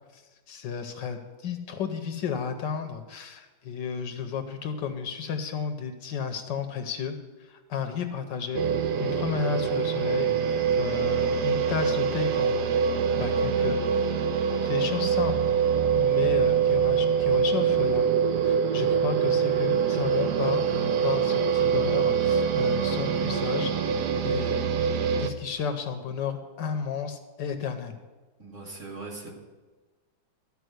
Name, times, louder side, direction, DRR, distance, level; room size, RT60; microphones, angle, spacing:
voice 1, 0.5-8.6 9.0-12.8 13.1-14.2 14.6-15.5 15.9-18.1 18.4-23.7 24.2-24.6 25.2-28.0, left 7 dB, 70° left, 7 dB, 1.4 m, -33 dB
sound 1, 8.5-25.3, right 7 dB, 65° right, 1.2 m, -24 dB
voice 2, 28.4-29.3, right 3 dB, 40° right, -3 dB, 2.5 m, -40 dB
13.0 x 5.3 x 7.9 m, 1.3 s
omnidirectional pair, 2.1 m